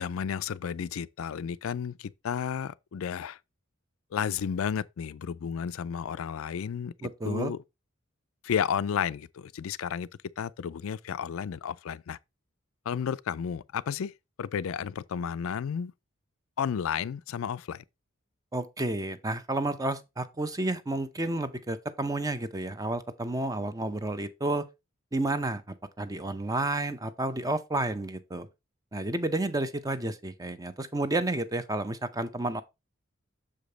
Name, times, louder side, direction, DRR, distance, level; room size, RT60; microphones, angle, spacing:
voice 1, 0.0-3.4 4.1-6.9 7.2-7.6 8.4-10.1 10.4-12.2 12.9-14.1 14.4-15.9 16.6-17.8, left 7 dB, 80° left, 0.4 m, -32 dB
voice 2, 7.0-7.5 18.5-24.7 25.1-28.5 28.9-32.6, right 2 dB, 15° right, 0.6 m, -31 dB
6.7 x 5.1 x 3.9 m
head